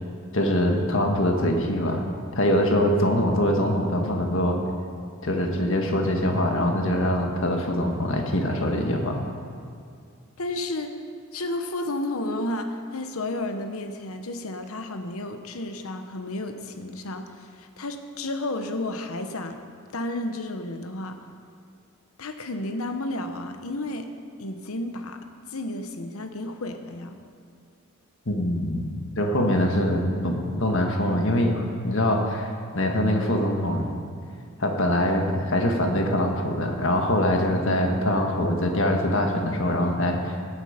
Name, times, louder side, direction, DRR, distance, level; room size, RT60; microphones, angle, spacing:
voice 1, 0.3-2.0 2.3-4.6 5.2-9.2 28.2-34.0 34.6-40.4, left 1 dB, 60° left, 2 dB, 1.6 m, -23 dB
voice 2, 10.4-11.0 11.3-19.6 19.9-21.2 22.2-24.1 24.4-27.2, left 2 dB, 75° left, 7 dB, 1.1 m, -32 dB
16.5 x 9.8 x 5.1 m, 2.3 s
head